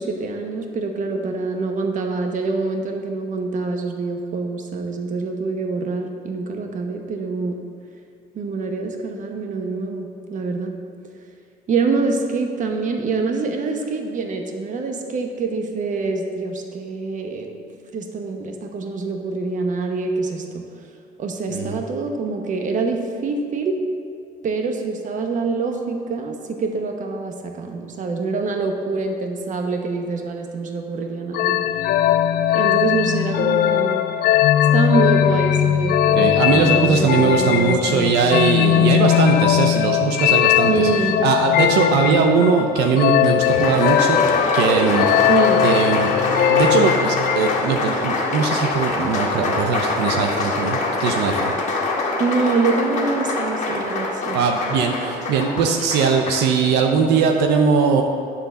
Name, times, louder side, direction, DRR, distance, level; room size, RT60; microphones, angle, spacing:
voice 1, 0.0-7.6 8.3-10.8 11.7-17.5 17.9-20.6 21.2-23.8 24.4-31.6 32.5-34.0 34.7-38.1 38.6-39.0 40.7-41.2 45.3-45.6 52.2-54.4, right 4 dB, 50° right, 4 dB, 1.0 m, -25 dB
voice 2, 21.5-21.8 36.1-40.9 41.2-44.2 44.5-45.3 45.6-46.1 46.5-51.5 54.3-58.0, right 5 dB, 85° right, 3 dB, 0.7 m, -20 dB
sound 1, 31.3-47.8, left 11 dB, 65° left, 0.5 m, -19 dB
Applause, 43.2-56.5, left 2 dB, 45° left, 1.6 m, -24 dB
10.0 x 3.9 x 6.9 m, 2.3 s
cardioid pair, 110°, 17 cm